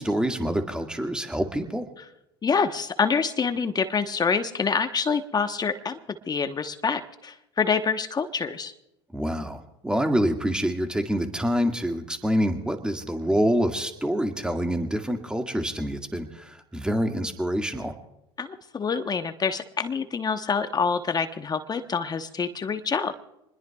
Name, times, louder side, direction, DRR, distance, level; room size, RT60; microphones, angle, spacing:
voice 1, 0.0-1.9 9.1-17.9, equal, 5° right, 4 dB, 2.0 m, -26 dB
voice 2, 2.4-6.0 6.3-8.7 18.4-23.1, left 5 dB, 30° left, 9 dB, 1.0 m, -26 dB
27.0 x 21.0 x 2.4 m, 0.87 s
hypercardioid pair, 70°, 14 cm